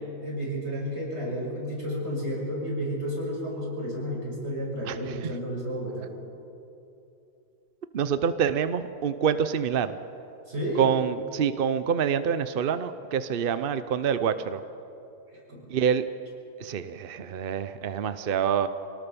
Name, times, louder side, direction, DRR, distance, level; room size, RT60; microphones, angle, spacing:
voice 1, 0.0-6.1 10.5-10.8 15.5-15.6, equal, 40° right, -3 dB, 6.5 m, -32 dB
voice 2, 7.9-9.9 10.8-14.6 15.7-16.0 16.6-18.7, right 7 dB, 60° right, 11 dB, 0.5 m, -26 dB
25.0 x 18.5 x 6.9 m, 2.7 s
omnidirectional pair, 1.8 m